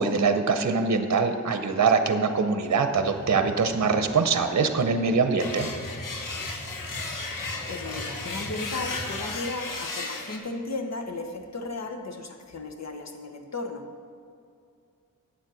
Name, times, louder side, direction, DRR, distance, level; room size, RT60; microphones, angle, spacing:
voice 1, 0.0-5.7, right 5 dB, 55° right, 7 dB, 0.8 m, -23 dB
sound 1, 2.9-9.4, equal, 10° left, 1.1 m, -41 dB
sound 2, 5.4-10.4, left 3 dB, 75° left, 1.1 m, -35 dB
voice 2, 7.7-13.9, left 2 dB, 55° left, 4 dB, 1.1 m, -35 dB
8.7 x 7.4 x 6.3 m, 2.5 s
wide cardioid pair, 110°, 33 cm